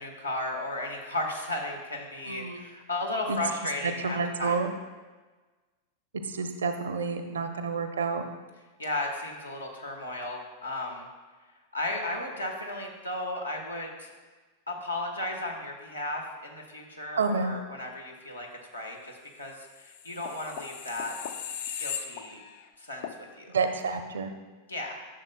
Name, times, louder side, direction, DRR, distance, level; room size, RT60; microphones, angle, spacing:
voice 1, 0.0-4.6 8.8-11.1 11.7-14.1 14.7-18.5 18.7-21.1 21.8-22.4 22.8-23.6 24.7-25.0, left 1 dB, 80° left, 1 dB, 1.2 m, -35 dB
voice 2, 2.3-2.6 3.3-3.4 4.0-4.7 6.2-8.2 17.2-17.5 23.5-24.3, right 4 dB, 70° right, 8 dB, 0.6 m, -29 dB
sound 1, 19.7-22.7 23.0-23.2, left 8 dB, 55° left, 0.5 m, -38 dB
11.5 x 6.5 x 2.2 m, 1.3 s
figure-of-eight pair, 90°, 0 cm